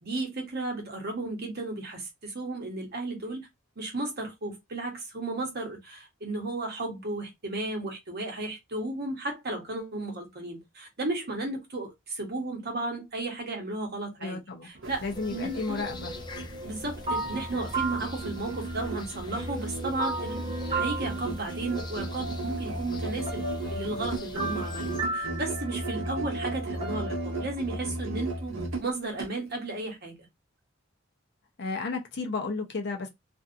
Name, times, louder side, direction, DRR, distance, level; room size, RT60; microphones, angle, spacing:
voice 1, 0.0-3.5 3.8-15.8 16.6-23.4 23.7-30.2, right 2 dB, 50° right, 1.1 m, -34 dB
voice 2, 14.2-14.7 15.0-16.1 31.6-33.1, left 4 dB, 55° left, 0.7 m, -33 dB
Musical instrument, 14.7-29.4, right 2 dB, 70° right, 0.8 m, -36 dB
sound 1, 14.8-25.0, left 2 dB, 20° left, 0.3 m, -46 dB
sound 2, 15.2-19.1 19.4-27.4, right 2 dB, 30° right, 1.0 m, -36 dB
2.6 x 2.4 x 2.5 m
head